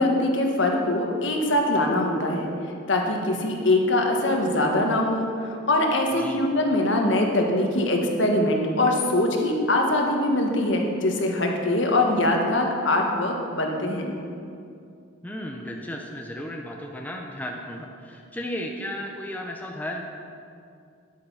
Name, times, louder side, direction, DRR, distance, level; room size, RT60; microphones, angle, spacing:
voice 1, 0.0-2.5 2.9-14.2, left 1 dB, 65° left, 1 dB, 1.5 m, -23 dB
voice 2, 15.2-20.0, left 1 dB, 10° left, 0 dB, 0.8 m, -34 dB
10.5 x 8.7 x 5.8 m, 2.4 s
head